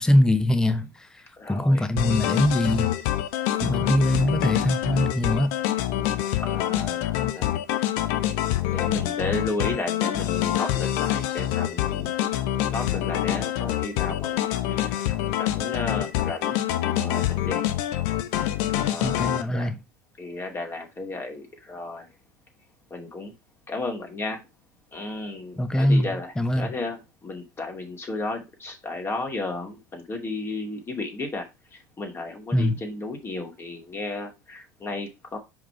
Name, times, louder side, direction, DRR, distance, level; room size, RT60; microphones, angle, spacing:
voice 1, 0.0-2.9 3.6-5.6 19.0-19.8 25.6-26.7 32.5-32.8, left 1 dB, 5° left, 0.8 m, -23 dB
voice 2, 1.4-1.9 3.5-4.0 6.4-7.5 8.7-12.1 12.6-15.0 15.3-16.6 16.9-17.7 18.8-19.7 20.2-22.1 22.9-23.3 23.7-24.4 24.9-35.4, left 2 dB, 25° left, 2.7 m, -34 dB
Dolphin ride-short, 2.0-19.4, left 12 dB, 60° left, 0.9 m, -26 dB
6.0 x 5.1 x 4.5 m
hypercardioid pair, 75°, 10 cm